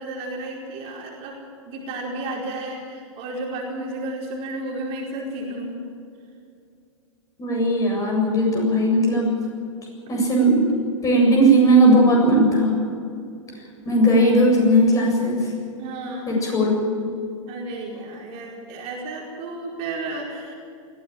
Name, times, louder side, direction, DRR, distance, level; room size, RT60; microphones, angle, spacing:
voice 1, 0.0-1.4 1.6-5.8 15.8-16.3 17.5-20.5, right 2 dB, 35° right, -1 dB, 4.7 m, -32 dB
voice 2, 7.4-9.3 10.1-10.7 11.0-12.8 13.8-15.5 16.3-17.1, right 1 dB, 20° left, -1 dB, 7.7 m, -18 dB
21.0 x 16.0 x 9.2 m, 2.4 s
figure-of-eight pair, 100°, 17 cm